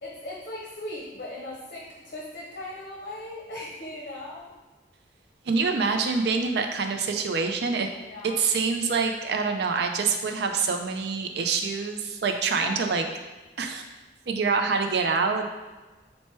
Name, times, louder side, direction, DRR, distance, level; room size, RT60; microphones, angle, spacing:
voice 1, 0.0-4.5 8.0-8.4 12.6-12.9, left 1 dB, 55° left, -4 dB, 0.7 m, -38 dB
voice 2, 5.5-7.9 8.2-13.0 13.6-13.9 14.3-15.5, right 4 dB, 65° right, 5 dB, 0.4 m, -26 dB
4.5 x 2.1 x 4.3 m, 1.2 s
head